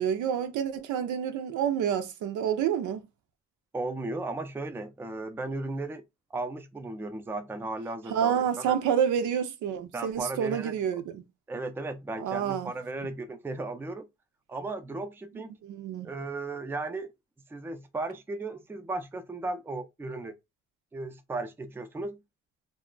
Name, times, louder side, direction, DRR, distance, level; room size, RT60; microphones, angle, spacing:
voice 1, 0.0-3.0 8.1-11.2 12.2-12.7 15.7-16.1, right 8 dB, 80° right, 0.6 m, -28 dB
voice 2, 3.7-6.0 6.3-8.8 9.9-10.7 11.5-14.1 14.5-15.6 16.0-17.1 17.5-20.3 20.9-22.2, right 2 dB, 10° right, 0.4 m, -35 dB
2.3 x 2.0 x 3.7 m
cardioid pair, 90°, 30 cm